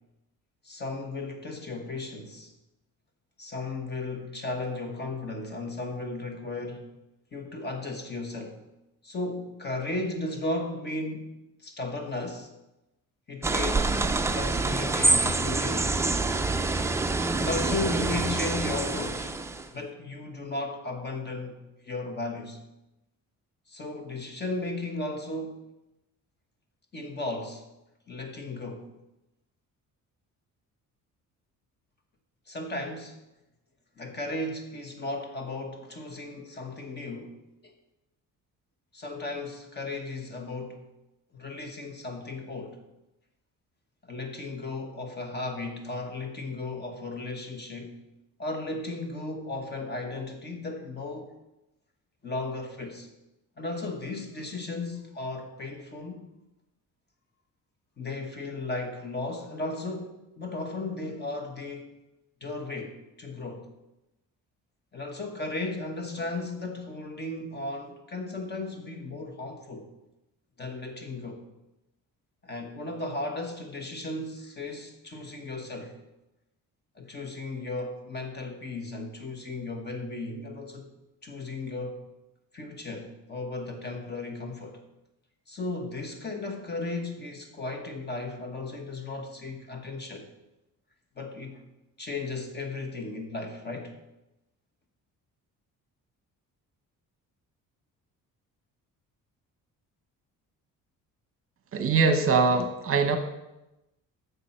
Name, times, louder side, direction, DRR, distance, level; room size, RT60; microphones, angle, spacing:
voice 1, 0.6-2.5 3.4-6.9 7.3-8.6 9.0-12.5 13.3-16.1 17.4-22.6 23.7-25.7 26.9-27.6 28.1-28.9 32.5-33.2 34.0-37.4 37.6-37.7 38.9-40.8 41.3-42.8 44.0-48.0 48.4-51.3 52.2-53.1 53.6-56.3 58.0-61.9 62.4-63.7 64.9-69.9 70.6-71.4 72.4-76.0 76.9-80.9 81.2-82.0 82.5-84.8 85.5-90.3 91.2-91.6 92.0-93.9, left 2 dB, 30° left, 4 dB, 1.2 m, -35 dB
sound 1, 13.4-19.7, right 3 dB, 10° right, 0.3 m, -26 dB
voice 2, 101.7-103.2, right 4 dB, 40° right, 6 dB, 1.0 m, -22 dB
10.0 x 6.9 x 4.5 m, 0.94 s
cardioid pair, 150°, 33 cm